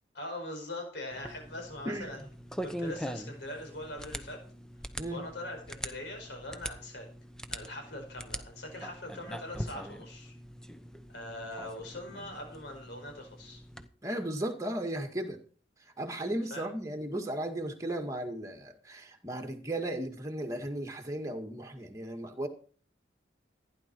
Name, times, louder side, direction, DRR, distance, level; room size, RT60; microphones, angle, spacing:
voice 1, 0.1-2.3 2.6-4.4 5.1-7.1 7.5-10.3 11.1-13.6 16.5-16.7, left 1 dB, 65° left, 3 dB, 5.0 m, -42 dB
sound 1, 1.1-13.9, equal, 5° left, 0.9 m, -43 dB
voice 2, 14.0-15.4 16.0-22.5, right 1 dB, 15° right, 2 dB, 1.9 m, -35 dB
15.0 x 10.5 x 4.6 m, 0.42 s
head